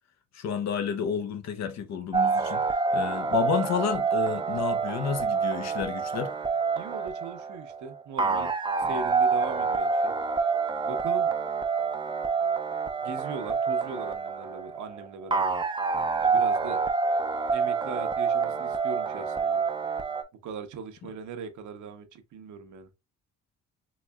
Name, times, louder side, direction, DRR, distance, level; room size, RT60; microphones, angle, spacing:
voice 1, 0.3-2.6 2.9-6.3, left 7 dB, 60° left, 0.7 m, -30 dB
sound 1, 2.1-20.2, right 5 dB, 15° right, 0.5 m, -27 dB
voice 2, 6.8-8.5 8.8-10.1 10.9-11.4 13.0-15.5 16.2-16.8 17.5-19.6 20.4-22.9, right 5 dB, 75° right, 0.9 m, -39 dB
4.0 x 3.1 x 2.3 m
cardioid pair, 90°, 30 cm